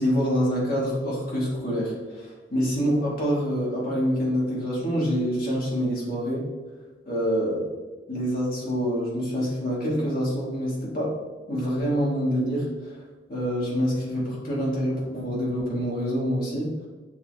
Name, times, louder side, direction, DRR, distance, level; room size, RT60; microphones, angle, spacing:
voice 1, 0.0-6.5 7.0-7.7 8.1-11.2 11.5-13.0 13.3-16.9, equal, 50° left, -5 dB, 1.5 m, -26 dB
6.4 x 2.2 x 3.1 m, 1.3 s
head